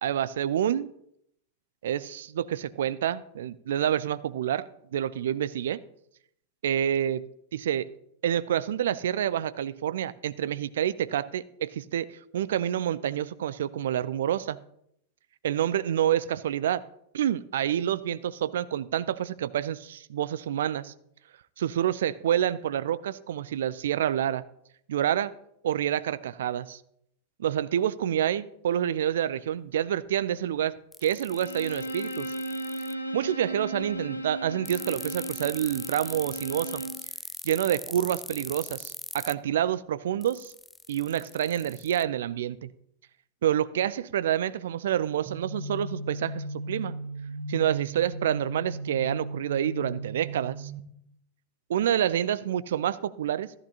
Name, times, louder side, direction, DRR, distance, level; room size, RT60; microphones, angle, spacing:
voice 1, 0.0-0.9 1.8-4.6 4.9-5.8 6.6-7.2 7.5-7.9 8.2-12.1 12.3-14.6 15.4-16.8 17.1-20.9 21.6-24.4 24.9-25.3 25.6-26.8 27.4-30.7 31.0-32.3 33.1-36.8 37.4-40.5 40.9-42.7 43.4-47.0 47.5-50.7 51.7-53.5, right 10 dB, 60° right, 0.5 m, -28 dB
sound 1, 30.9-32.9 34.7-39.3 40.2-42.0, left 2 dB, 10° left, 0.3 m, -40 dB
Bowed string instrument, 31.3-37.1, right 1 dB, 85° left, 1.0 m, -36 dB
sound 2, 45.3-50.8, right 2 dB, 25° right, 1.3 m, -36 dB
14.0 x 14.0 x 2.8 m
figure-of-eight pair, 90°, 0 cm